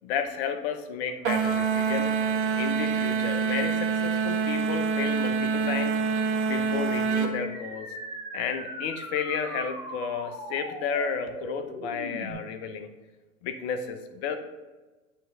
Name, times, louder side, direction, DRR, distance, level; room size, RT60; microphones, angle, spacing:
voice 1, 0.0-2.1 2.5-5.9 6.4-7.9 8.3-12.9 13.4-14.4, left 7 dB, 50° left, 8 dB, 0.8 m, -32 dB
sound 1, 1.2-7.3, right 6 dB, 55° right, 1.0 m, -26 dB
Cartoon Falling....falling, 7.3-12.3, right 1 dB, 10° right, 1.9 m, -39 dB
8.7 x 3.1 x 4.9 m, 1.2 s
hypercardioid pair, 110°, 42 cm